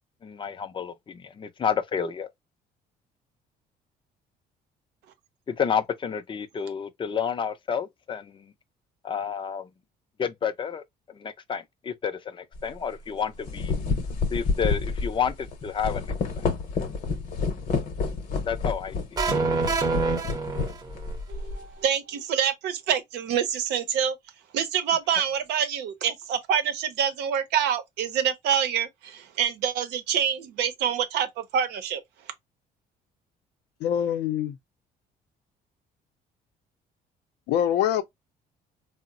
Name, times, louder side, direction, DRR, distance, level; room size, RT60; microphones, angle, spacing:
voice 1, 0.2-2.3 5.5-8.5 9.0-9.7 10.2-10.8 11.1-13.7 14.3-16.0 16.4-16.5 18.5-19.2, left 7 dB, 30° left, 0.5 m, -30 dB
sound 1, 12.5-12.7 13.3-21.7, left 4 dB, 50° left, 0.8 m, -29 dB
sound 2, 19.2-21.2, right 4 dB, 25° right, 0.7 m, -26 dB
voice 2, 21.3-24.2 24.5-32.0, right 8 dB, 85° right, 0.7 m, -26 dB
voice 3, 33.8-34.6 37.5-38.0, left 10 dB, 80° left, 0.5 m, -24 dB
3.8 x 2.0 x 2.5 m
cardioid pair, 110°, 17 cm